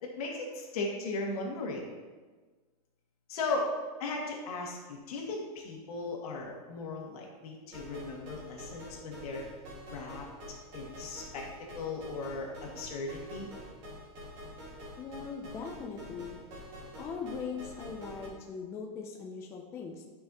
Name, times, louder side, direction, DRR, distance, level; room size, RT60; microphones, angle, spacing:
voice 1, 0.0-1.9 3.3-3.7 4.0-9.4 9.9-10.3 10.7-11.4 11.8-13.5, left 3 dB, 70° left, -1 dB, 2.0 m, -37 dB
sound 1, 7.7-18.3, equal, 35° right, 2.0 m, -47 dB
voice 2, 15.0-16.4 17.0-20.0, left 5 dB, 15° left, 1 dB, 0.4 m, -40 dB
11.0 x 5.6 x 2.9 m, 1.4 s
supercardioid pair, 170°, 20 cm